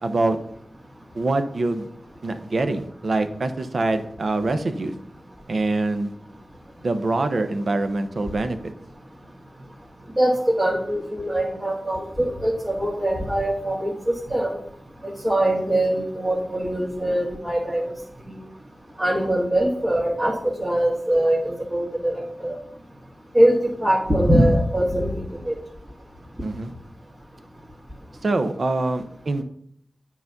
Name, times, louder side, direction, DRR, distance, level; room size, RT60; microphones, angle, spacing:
voice 1, 0.0-0.4 1.1-1.9 2.2-4.9 5.5-6.1 6.8-8.7 26.4-26.7 28.2-29.4, right 2 dB, 65° right, 8 dB, 0.9 m, -24 dB
voice 2, 10.2-14.6 15.0-17.9 19.0-22.6 23.3-25.5, right 1 dB, 30° right, -6 dB, 2.1 m, -22 dB
9.4 x 4.1 x 5.9 m, 0.67 s
cardioid pair, 50°, 0 cm